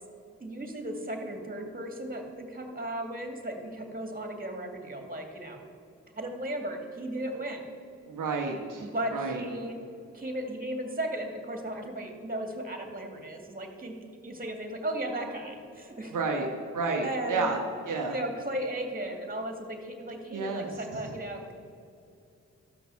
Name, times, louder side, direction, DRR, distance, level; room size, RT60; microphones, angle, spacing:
voice 1, 0.4-5.6 6.1-7.6 8.8-9.8 10.1-14.0 14.2-16.2 17.0-17.5 18.1-21.5, right 1 dB, 30° right, 4 dB, 2.4 m, -36 dB
voice 2, 8.1-8.9 9.1-9.4 16.1-16.5 16.7-17.6 17.9-18.2 20.3-20.7, right 4 dB, 80° right, 1 dB, 1.1 m, -30 dB
13.0 x 6.1 x 7.1 m, 2.5 s
cardioid pair, 45°, 31 cm